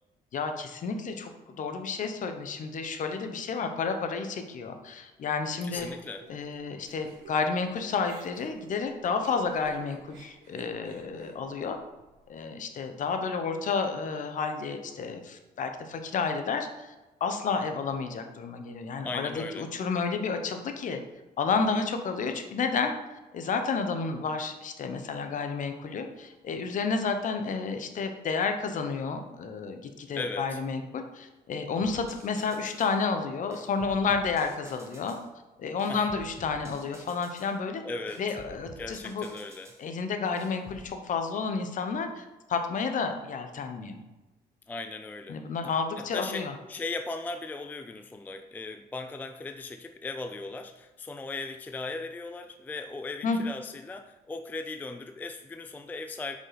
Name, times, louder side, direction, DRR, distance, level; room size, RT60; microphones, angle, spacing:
voice 1, 0.3-5.9 6.3-11.8 12.3-16.9 17.2-21.0 21.4-22.9 23.3-35.2 35.6-37.8 38.2-39.2 39.8-44.0 45.3-46.5 53.2-53.4, left 5 dB, 50° left, 6 dB, 1.0 m, -31 dB
voice 2, 5.6-6.3 19.0-19.7 30.1-30.6 35.9-36.1 37.8-38.2 38.8-39.7 44.7-45.4 46.0-56.4, left 3 dB, 10° left, 7 dB, 0.3 m, -38 dB
Giggle, 5.8-7.7 8.0-12.3, right 5 dB, 85° right, 1.2 m, -53 dB
sound 1, 31.8-33.0 33.5-35.3 35.8-37.6 38.1-39.8 40.4-40.9, right 1 dB, 15° right, 1.2 m, -50 dB
5.8 x 5.3 x 5.0 m, 1.1 s
cardioid pair, 110°, 17 cm